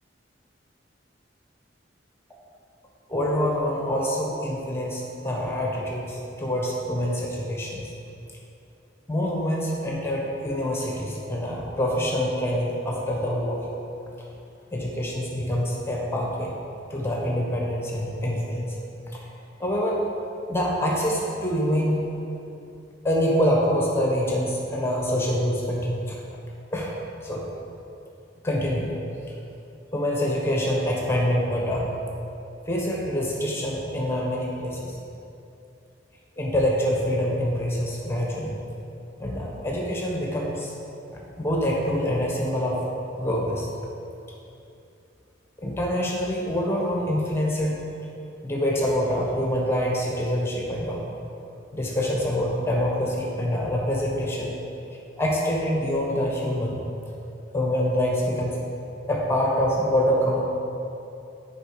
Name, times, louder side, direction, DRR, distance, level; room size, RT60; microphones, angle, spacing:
voice 1, 3.1-7.9 9.1-13.6 14.7-16.5 16.9-18.7 19.1-19.2 19.6-20.0 20.5-22.2 23.0-26.2 26.7-27.0 27.2-27.5 28.4-28.9 29.9-31.9 32.7-35.0 36.4-38.6 39.2-40.7 41.1-42.8 43.2-43.7 45.6-47.8 48.4-51.1 51.7-54.5 55.2-56.8 57.5-58.6 59.1-60.4, equal, 15° left, -3 dB, 1.2 m, -25 dB
10.0 x 4.9 x 5.1 m, 2.7 s
head